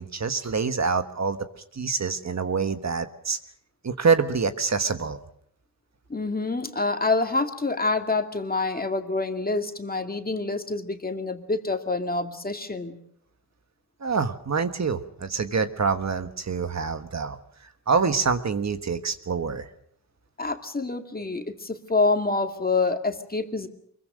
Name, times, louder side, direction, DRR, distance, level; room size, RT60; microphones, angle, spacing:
voice 1, 0.0-1.4 1.7-3.4 3.8-5.2 14.0-17.4 17.9-19.7, right 5 dB, 45° right, 9 dB, 1.4 m, -26 dB
voice 2, 6.1-13.0 20.4-23.7, left 3 dB, 25° left, 5 dB, 2.3 m, -27 dB
24.5 x 22.5 x 6.3 m, 0.69 s
wide cardioid pair, 110°, 38 cm